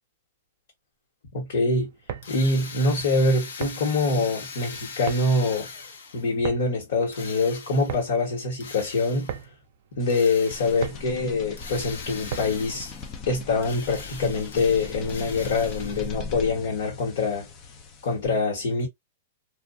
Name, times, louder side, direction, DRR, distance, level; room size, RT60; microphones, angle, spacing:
voice 1, 1.3-1.9 2.3-5.7 6.1-9.3 9.9-12.9 13.3-17.5 18.0-18.9, left 3 dB, 60° left, 1.2 m, -24 dB
sound 1, 1.9-12.8, right 9 dB, 45° right, 0.4 m, -39 dB
Drill, 2.2-6.4 7.1-8.1 8.6-9.5 10.1-11.0 11.6-13.2 13.6-16.2, left 5 dB, 75° left, 0.8 m, -41 dB
sound 2, 10.0-18.3, left 4 dB, 25° left, 0.4 m, -39 dB
2.4 x 2.3 x 2.5 m
hypercardioid pair, 165°, 0 cm